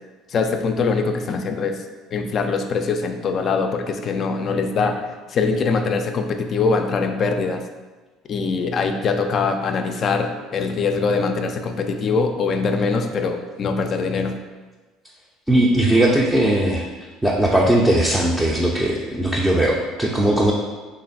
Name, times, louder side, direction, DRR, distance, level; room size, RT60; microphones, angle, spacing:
voice 1, 0.3-1.8 2.1-5.0 5.3-7.6 8.3-14.3, left 4 dB, 45° left, 5 dB, 0.3 m, -22 dB
voice 2, 15.5-16.9 17.2-20.5, right 1 dB, 10° right, -3 dB, 0.5 m, -18 dB
3.1 x 2.5 x 3.9 m, 1.3 s
supercardioid pair, 80°, 0 cm